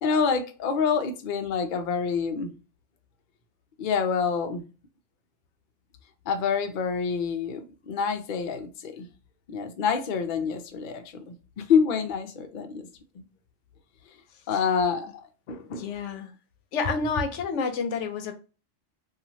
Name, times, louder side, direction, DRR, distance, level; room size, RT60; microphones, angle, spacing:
voice 1, 0.0-2.5 3.8-4.6 6.3-9.1 9.5-11.2 11.6-12.9 13.1-13.2 14.5-15.9, left 6 dB, 60° left, 0.5 m, -27 dB
voice 2, 15.8-16.3 16.7-18.3, left 5 dB, 80° left, 0.9 m, -29 dB
2.9 x 2.4 x 2.6 m
omnidirectional pair, 1.2 m